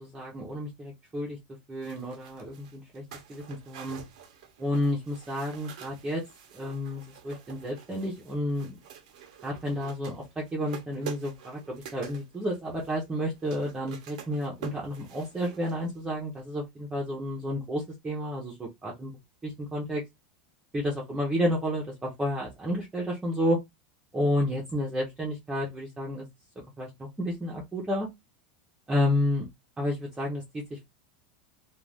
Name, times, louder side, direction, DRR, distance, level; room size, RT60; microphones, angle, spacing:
voice 1, 0.0-1.4 1.7-3.0 3.3-4.0 4.6-6.2 6.5-8.7 9.4-19.1 19.4-20.0 20.7-23.6 24.1-26.3 26.8-28.1 28.9-29.5 29.8-30.9, left 1 dB, 10° right, 0.7 m, -31 dB
sound 1, 1.8-16.1 16.4-16.5, right 8 dB, 70° right, 0.6 m, -47 dB
2.4 x 2.3 x 3.3 m
supercardioid pair, 155°, 4 cm